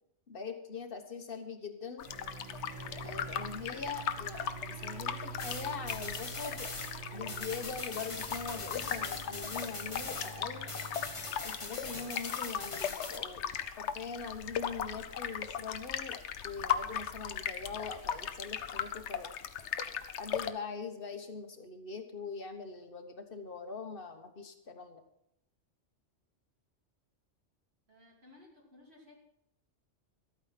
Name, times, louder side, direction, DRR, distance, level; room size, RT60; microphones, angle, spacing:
voice 1, 0.3-2.1 3.0-6.7 7.1-10.7 11.4-13.4 13.7-16.2 16.4-19.3 20.2-25.0, left 5 dB, 50° left, 7 dB, 1.5 m, -42 dB
sound 1, 2.0-20.5, left 8 dB, 75° left, 1.0 m, -38 dB
sound 2, 2.1-12.1, right 6 dB, 40° right, 1.0 m, -47 dB
sound 3, 5.4-10.4 10.7-13.2, left 3 dB, 30° left, 1.0 m, -42 dB
voice 2, 27.9-29.1, left 2 dB, 60° right, -4 dB, 3.3 m, -58 dB
13.0 x 9.0 x 5.9 m, 0.76 s
omnidirectional pair, 1.2 m